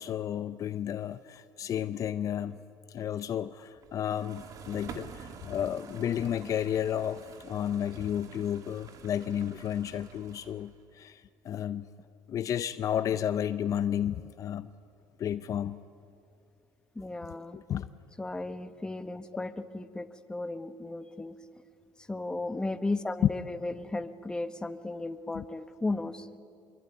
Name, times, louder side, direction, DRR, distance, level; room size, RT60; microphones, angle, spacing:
voice 1, 0.0-2.6 2.9-11.9 12.3-14.7 15.2-15.8 17.5-17.9 25.3-25.4, left 10 dB, 45° left, 13 dB, 0.6 m, -32 dB
sound 1, 3.8-10.8, right 6 dB, 50° right, 2.1 m, -48 dB
voice 2, 16.9-17.6 18.2-21.4 22.1-26.3, left 2 dB, 10° left, 10 dB, 1.2 m, -35 dB
25.5 x 22.5 x 9.3 m, 2.6 s
cardioid pair, 120°, 8 cm